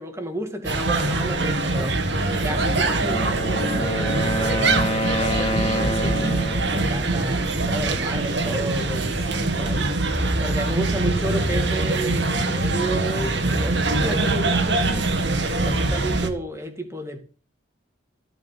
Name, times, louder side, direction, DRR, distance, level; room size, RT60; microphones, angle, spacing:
voice 1, 0.0-2.0 2.4-6.4 6.7-9.9 10.4-15.1 15.6-17.2, right 1 dB, 15° right, 2.3 m, -32 dB
sound 1, 0.6-16.3, right 2 dB, 60° right, 2.3 m, -23 dB
Wind instrument woodwind instrument, 2.9-6.8, left 1 dB, 30° left, 1.9 m, -27 dB
16.0 x 5.9 x 8.5 m
head